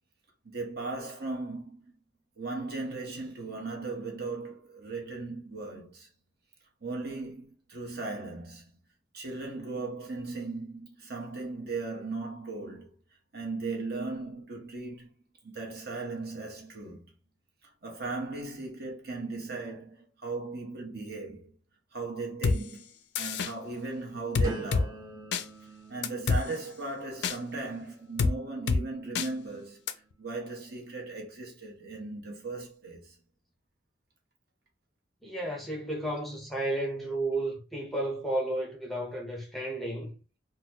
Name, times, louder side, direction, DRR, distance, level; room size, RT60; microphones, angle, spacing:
voice 1, 0.4-1.9 2.4-6.1 6.8-8.6 9.1-12.9 13.3-15.1 15.4-17.1 17.6-21.5 21.9-22.9 23.2-25.1 25.9-29.8 30.2-33.2, right 3 dB, 55° right, 1.0 m, -37 dB
sound 1, 22.4-22.6 23.2-23.5 24.4-24.9 25.3-25.4 26.0-26.4 27.2-27.4 28.2-28.3 28.7-28.8 29.2-29.3 29.9-30.0, left 4 dB, 65° left, 0.4 m, -25 dB
sound 2, 24.4-30.3 30.8-31.2, right 1 dB, 25° right, 1.7 m, -47 dB
voice 2, 35.2-40.2, right 1 dB, ahead, 0.7 m, -32 dB
3.9 x 2.2 x 2.9 m
head